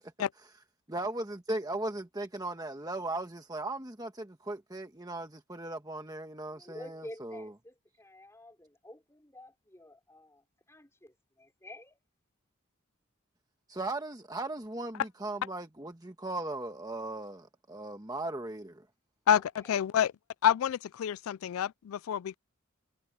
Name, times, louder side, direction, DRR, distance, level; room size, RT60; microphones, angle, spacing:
voice 1, 0.9-7.5 13.7-18.8, right 2 dB, 20° right, 1.3 m, -37 dB
voice 2, 6.5-12.0 19.6-19.7, left 1 dB, 15° left, 4.9 m, -50 dB
voice 3, 19.3-20.1 20.4-22.4, left 9 dB, 85° left, 0.3 m, -28 dB
head